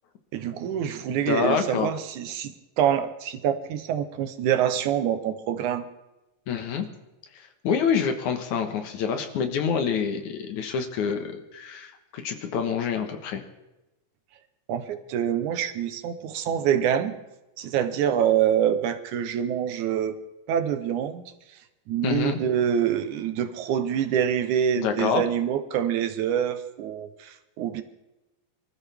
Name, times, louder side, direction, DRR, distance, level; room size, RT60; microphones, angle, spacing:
voice 1, 0.3-5.9 14.7-17.1 17.6-20.2 20.5-21.2 21.9-27.8, right 9 dB, 75° right, 9 dB, 2.3 m, -26 dB
voice 2, 1.3-1.9 6.5-6.9 7.4-13.4 22.0-22.4 24.8-25.2, left 6 dB, 70° left, 7 dB, 2.7 m, -27 dB
24.5 x 14.0 x 3.5 m, 1.0 s
omnidirectional pair, 3.7 m